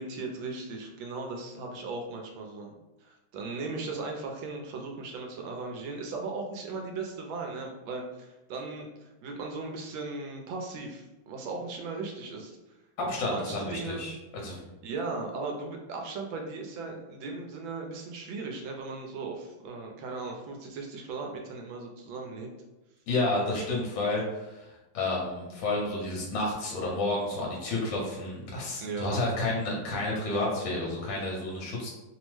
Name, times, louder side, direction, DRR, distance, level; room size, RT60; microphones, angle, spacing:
voice 1, 0.0-2.7 3.0-12.6 13.3-14.1 14.8-22.5 28.8-29.2, right 3 dB, 75° right, 2 dB, 1.2 m, -37 dB
voice 2, 13.0-14.2 14.4-14.6 23.1-31.9, left 2 dB, 70° left, -2 dB, 1.4 m, -30 dB
3.4 x 2.0 x 3.1 m, 1.0 s
omnidirectional pair, 2.3 m